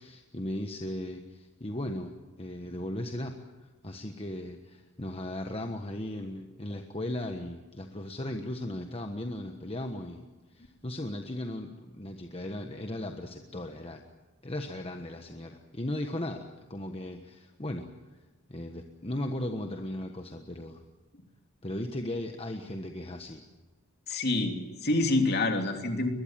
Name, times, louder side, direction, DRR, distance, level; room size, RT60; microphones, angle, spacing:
voice 1, 0.0-3.4 3.6-14.0 14.4-17.9 18.5-20.8 21.6-23.4, left 1 dB, 25° left, 4 dB, 1.3 m, -37 dB
voice 2, 24.1-26.1, left 2 dB, 45° left, 4 dB, 3.1 m, -27 dB
23.0 x 21.0 x 7.5 m, 1.3 s
head